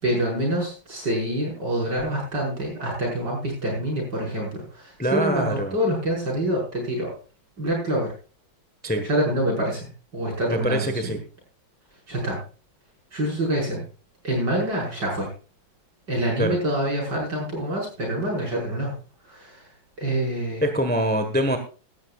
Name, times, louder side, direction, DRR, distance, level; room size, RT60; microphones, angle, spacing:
voice 1, 0.0-7.1 7.6-8.1 9.0-11.2 12.1-12.4 13.1-13.8 14.2-15.3 16.1-19.7 20.0-20.7, right 1 dB, 60° right, -2 dB, 6.2 m, -26 dB
voice 2, 5.0-5.7 8.8-9.0 10.5-11.2 16.4-16.5 20.6-21.6, equal, 5° left, 6 dB, 1.0 m, -24 dB
16.5 x 12.5 x 2.4 m, 0.35 s
omnidirectional pair, 2.1 m